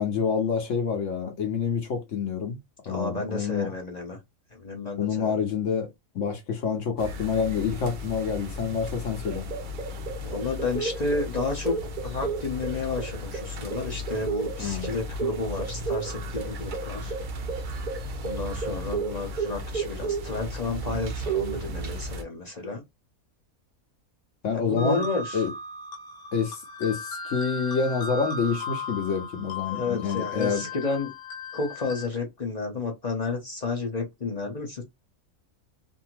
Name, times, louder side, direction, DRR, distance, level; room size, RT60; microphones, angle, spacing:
voice 1, 0.0-2.6 2.9-3.7 5.0-5.9 6.1-9.5 14.6-14.9 24.4-25.0 25.3-25.5 26.3-30.6, left 6 dB, 60° left, 1.0 m, -27 dB
voice 2, 2.8-4.2 4.5-5.3 10.2-17.1 18.2-22.8 24.5-25.4 29.7-31.1 31.5-34.8, left 3 dB, 40° left, 0.6 m, -31 dB
sound 1, 7.0-22.2, right 2 dB, 65° right, 0.4 m, -33 dB
sound 2, 24.8-32.1, left 3 dB, 80° left, 1.2 m, -36 dB
2.7 x 2.6 x 2.9 m
omnidirectional pair, 1.6 m